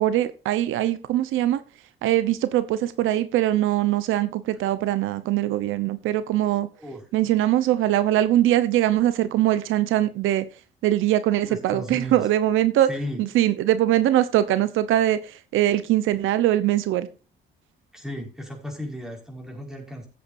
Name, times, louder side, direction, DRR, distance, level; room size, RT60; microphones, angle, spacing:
voice 1, 0.0-1.6 2.0-6.7 7.1-10.4 10.8-12.9 13.2-17.1, right 13 dB, 90° right, 13 dB, 1.0 m, -22 dB
voice 2, 11.4-12.3 12.9-13.2 17.9-20.1, equal, ahead, 0 dB, 5.4 m, -35 dB
16.0 x 8.7 x 2.7 m, 0.32 s
cardioid pair, 90°, 20 cm